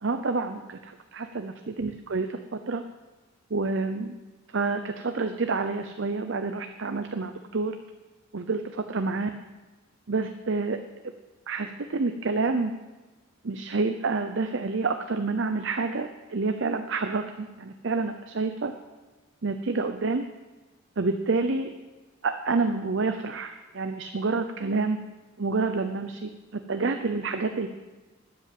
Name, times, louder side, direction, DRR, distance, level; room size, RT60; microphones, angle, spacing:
voice 1, 0.0-2.8 3.5-4.2 4.5-7.7 8.3-9.3 10.1-10.8 11.5-12.7 13.4-18.7 19.4-20.2 21.0-21.7 22.2-25.0 25.4-27.7, right 3 dB, 60° right, 7 dB, 0.7 m, -28 dB
12.5 x 8.3 x 7.7 m, 1.2 s
head